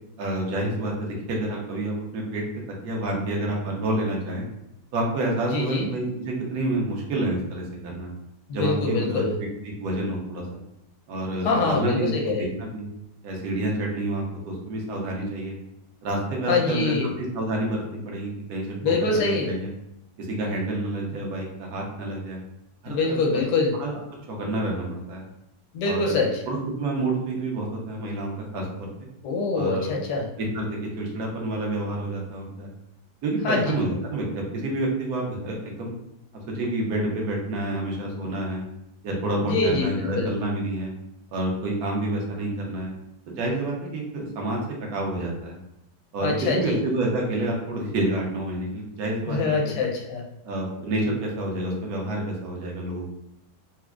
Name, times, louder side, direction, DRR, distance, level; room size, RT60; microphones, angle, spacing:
voice 1, 0.2-2.4 2.8-4.5 4.9-8.1 8.5-9.2 9.8-10.6 11.1-12.1 12.6-12.9 13.2-15.5 16.0-19.7 20.2-22.4 22.8-23.0 23.8-23.9 24.3-25.2 25.8-26.2 26.5-28.9 29.5-29.9 30.4-32.7 33.2-35.9 36.5-38.6 39.0-40.9 41.3-42.9 43.3-44.6 44.9-45.6 46.1-49.7 50.4-53.1, right 1 dB, 60° right, -1 dB, 1.1 m, -28 dB
voice 2, 5.5-5.9 8.5-9.4 11.4-12.5 16.5-17.1 18.8-19.5 22.9-23.8 25.7-26.4 29.2-30.3 33.4-33.7 39.4-40.3 46.2-46.8 49.3-50.2, left 3 dB, 70° left, 0 dB, 1.1 m, -24 dB
4.3 x 2.0 x 2.3 m, 0.86 s
omnidirectional pair, 2.1 m